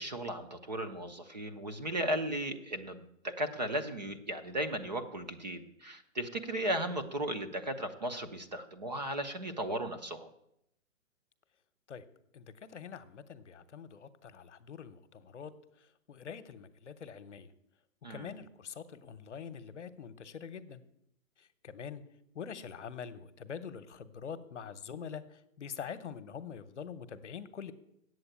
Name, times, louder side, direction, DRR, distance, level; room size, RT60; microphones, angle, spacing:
voice 1, 0.0-10.3 18.0-18.3, right 1 dB, 35° right, 8 dB, 0.6 m, -36 dB
voice 2, 12.3-15.5 16.1-17.5 18.1-20.8 21.4-22.0 22.3-27.7, left 7 dB, 60° left, 11 dB, 0.9 m, -45 dB
8.0 x 7.9 x 8.6 m, 0.77 s
hypercardioid pair, 175°, 41 cm